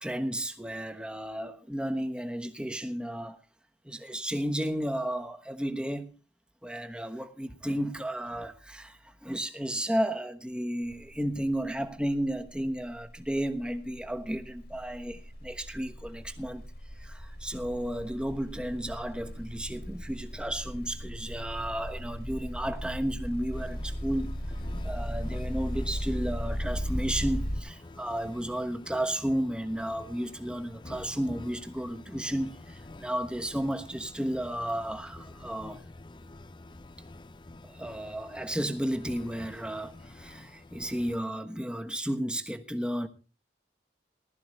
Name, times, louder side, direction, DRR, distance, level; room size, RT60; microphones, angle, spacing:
voice 1, 0.0-3.4 3.8-6.1 6.6-16.6 17.0-24.4 24.8-35.8 37.6-43.1, right 1 dB, 5° right, 1.1 m, -33 dB
sound 1, 10.9-11.2 11.5-27.6, equal, 55° left, 1.9 m, -37 dB
sound 2, 23.5-41.2, left 2 dB, 25° left, 0.6 m, -48 dB
19.5 x 13.0 x 3.2 m
head